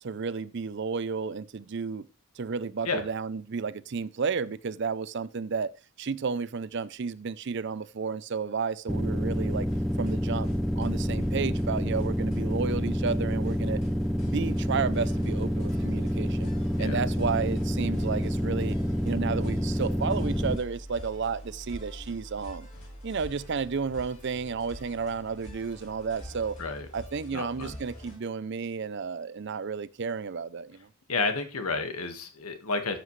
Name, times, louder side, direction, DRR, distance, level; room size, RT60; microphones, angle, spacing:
voice 1, 0.0-2.1 2.4-5.7 6.0-9.7 10.0-10.5 10.8-13.8 14.2-16.5 16.8-18.8 19.0-22.7 23.0-26.6 26.9-30.9, right 5 dB, 50° right, 0.5 m, -32 dB
sound 1, 8.9-20.6, equal, ahead, 0.5 m, -28 dB
sound 2, 9.3-28.2, equal, 35° left, 4.9 m, -45 dB
voice 2, 27.3-27.8 31.1-33.0, left 3 dB, 80° left, 1.6 m, -31 dB
13.0 x 7.7 x 3.2 m
head